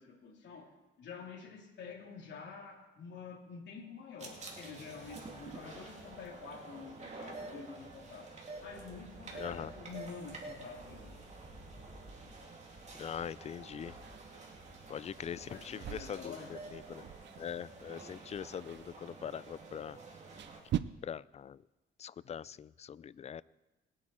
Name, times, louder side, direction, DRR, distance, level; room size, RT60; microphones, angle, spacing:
voice 1, 0.0-11.2 15.5-16.6 22.2-22.4, left 5 dB, 65° left, 0 dB, 2.9 m, -48 dB
sound 1, 4.2-20.6, right 3 dB, 35° right, 2.9 m, -49 dB
voice 2, 9.4-9.7 13.0-13.9 14.9-17.1 17.4-20.0 21.0-21.6 22.0-23.4, left 8 dB, 35° left, 20 dB, 0.4 m, -42 dB
sound 2, 14.0-20.8, right 11 dB, 65° right, 0.6 m, -44 dB
21.0 x 8.5 x 4.4 m, 1.1 s
cardioid pair, 90°, 20 cm